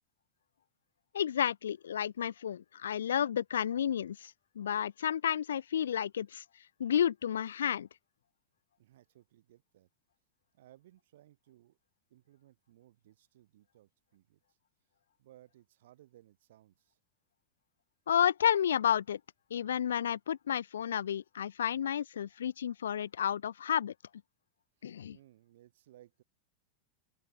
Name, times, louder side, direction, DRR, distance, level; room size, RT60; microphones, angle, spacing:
voice 1, 1.1-6.4 6.8-7.9 18.1-19.2 19.5-23.9 24.8-25.2, left 9 dB, 65° left, 0.3 m, -31 dB
voice 2, 8.8-9.9 10.5-11.8 12.1-14.6 15.2-17.0 24.8-26.2, right 14 dB, 55° right, 4.3 m, -61 dB
open air
figure-of-eight pair, 90°, 0 cm